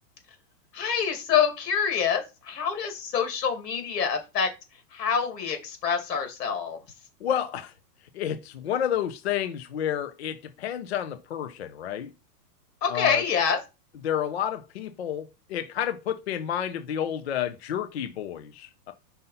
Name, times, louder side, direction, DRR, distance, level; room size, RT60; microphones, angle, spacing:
voice 1, 0.7-4.5 4.9-6.8 12.8-13.6, left 7 dB, 80° left, 2.6 m, -26 dB
voice 2, 7.2-7.7 8.1-12.1 12.9-13.2 14.0-18.9, left 9 dB, 45° left, 0.5 m, -30 dB
5.5 x 4.0 x 5.5 m
supercardioid pair, 180°, 48 cm